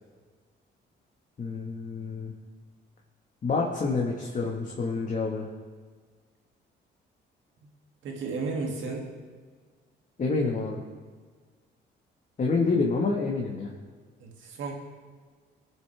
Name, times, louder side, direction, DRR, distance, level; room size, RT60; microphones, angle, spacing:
voice 1, 1.4-2.3 3.4-5.5 10.2-10.8 12.4-13.7, left 4 dB, 40° left, -1 dB, 1.6 m, -28 dB
voice 2, 8.0-9.0 14.2-14.7, right 4 dB, 75° right, 0 dB, 2.5 m, -33 dB
21.0 x 7.7 x 3.5 m, 1.5 s
cardioid pair, 90°, 20 cm